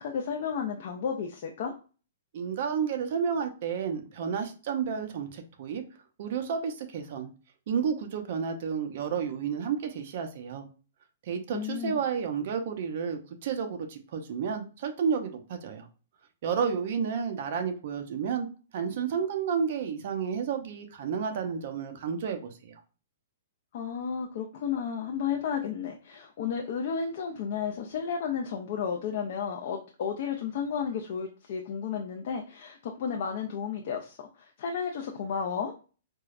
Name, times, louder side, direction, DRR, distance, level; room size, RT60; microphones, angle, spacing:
voice 1, 0.0-1.8 11.5-12.0 23.7-35.7, left 7 dB, 50° left, 2 dB, 0.4 m, -33 dB
voice 2, 2.3-5.8 6.2-7.3 7.7-10.7 11.2-15.9 16.4-18.5 18.7-22.8, right 6 dB, 50° right, 5 dB, 0.5 m, -31 dB
4.4 x 2.1 x 2.4 m, 0.36 s
hypercardioid pair, 165°, 0 cm